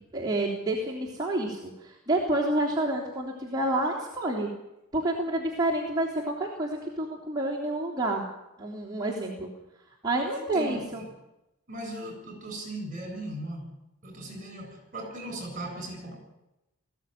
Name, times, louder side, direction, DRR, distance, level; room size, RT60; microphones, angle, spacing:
voice 1, 0.1-4.5 4.9-8.2 8.6-9.5 10.0-11.0, right 1 dB, 20° right, -5 dB, 3.3 m, -29 dB
voice 2, 10.3-11.1 11.7-13.7 14.0-16.2, right 1 dB, 40° right, 4 dB, 7.2 m, -38 dB
20.0 x 15.0 x 9.2 m, 0.93 s
head